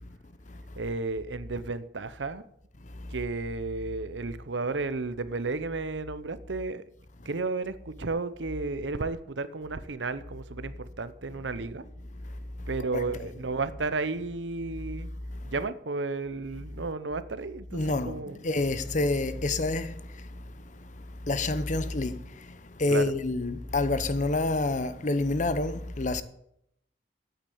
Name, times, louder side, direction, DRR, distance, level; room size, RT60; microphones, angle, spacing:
voice 1, 0.8-2.4 3.1-6.8 7.2-11.8 12.7-15.1 15.4-18.4 22.9-23.1, right 3 dB, 80° right, 0.8 m, -33 dB
voice 2, 17.7-18.2 18.4-19.9 21.3-22.2 22.8-26.2, left 2 dB, 45° left, 0.8 m, -27 dB
8.8 x 8.5 x 8.6 m
head